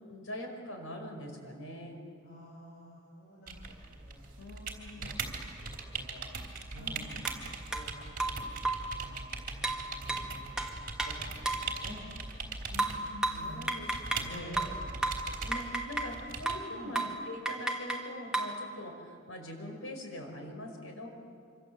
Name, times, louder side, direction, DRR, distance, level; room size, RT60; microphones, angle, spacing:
voice 1, 0.0-2.0 4.4-5.2 6.8-7.1 12.7-14.8 15.4-21.1, left 1 dB, 90° left, 3 dB, 5.4 m, -43 dB
voice 2, 2.2-6.2 6.7-7.3 7.7-8.2 8.6-9.3 9.5-9.7 10.0-12.4 13.3-13.7 14.3-15.0 16.7-16.9, equal, 55° left, -5 dB, 6.2 m, -50 dB
sound 1, 3.5-16.6, right 4 dB, 45° right, 3.4 m, -41 dB
sound 2, 7.2-7.4 7.7-7.9 8.2-8.9 9.6-11.7 12.8-14.3 14.6-16.2 16.5-16.7 16.9-17.2 17.5-18.6, right 2 dB, 5° right, 1.8 m, -33 dB
26.0 x 26.0 x 8.0 m, 2.4 s
head